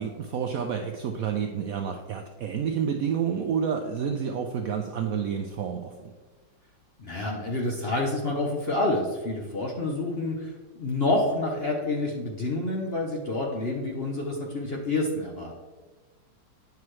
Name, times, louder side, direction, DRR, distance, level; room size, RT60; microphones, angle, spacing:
voice 1, 0.0-6.1, right 7 dB, 70° right, 4 dB, 0.8 m, -29 dB
voice 2, 7.0-15.5, left 2 dB, 50° left, -1 dB, 0.8 m, -28 dB
9.4 x 5.8 x 3.1 m, 1.4 s
omnidirectional pair, 2.0 m